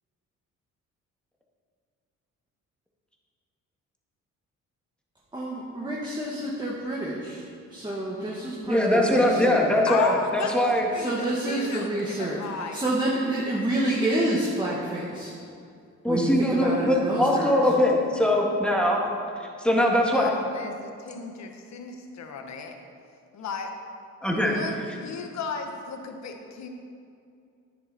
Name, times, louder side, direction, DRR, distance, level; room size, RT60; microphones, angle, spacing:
voice 1, 5.3-7.4 7.7-9.7 10.9-12.5 12.7-15.3 16.1-17.6, right 1 dB, 15° right, -5 dB, 1.6 m, -28 dB
voice 2, 8.7-10.9 16.0-19.0 19.6-20.3 24.2-24.6, left 1 dB, 5° left, -1 dB, 1.9 m, -22 dB
voice 3, 9.9-12.8 20.1-22.8 23.3-23.7 24.4-26.7, left 5 dB, 65° left, 5 dB, 1.2 m, -35 dB
10.5 x 9.9 x 4.2 m, 2.4 s
cardioid pair, 90°, 30 cm